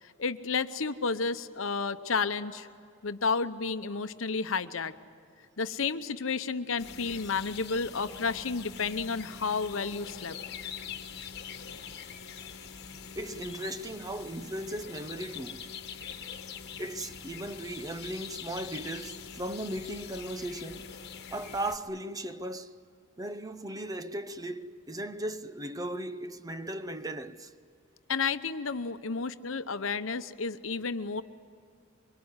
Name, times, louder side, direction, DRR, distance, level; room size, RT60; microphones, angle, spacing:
voice 1, 0.0-2.7 3.0-4.9 5.6-10.4 28.1-31.2, left 4 dB, 70° left, 0.9 m, -31 dB
sound 1, 6.8-21.8, left 7 dB, 55° left, 1.6 m, -44 dB
voice 2, 13.2-15.7 16.8-20.9 21.3-22.8 23.2-27.5, right 1 dB, 20° right, 0.7 m, -37 dB
24.0 x 23.0 x 9.6 m
head